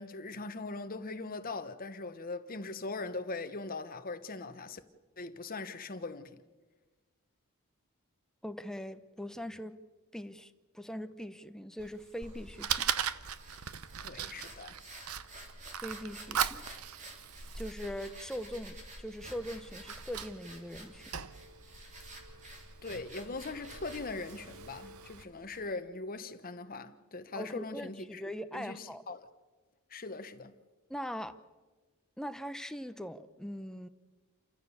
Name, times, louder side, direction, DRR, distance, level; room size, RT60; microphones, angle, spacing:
voice 1, 0.0-4.8 5.2-6.4 14.0-14.8 22.8-28.2 28.5-29.3 29.9-30.6, left 3 dB, 40° left, 1.1 m, -41 dB
voice 2, 8.4-9.8 10.1-12.9 15.8-16.6 17.5-21.0 27.3-29.0 30.9-31.4 32.2-33.9, equal, 5° left, 0.8 m, -41 dB
Fire, 11.8-25.2, right 8 dB, 80° right, 0.8 m, -40 dB
sound 1, 12.2-25.6, right 1 dB, 35° right, 3.4 m, -50 dB
29.0 x 14.0 x 7.1 m
head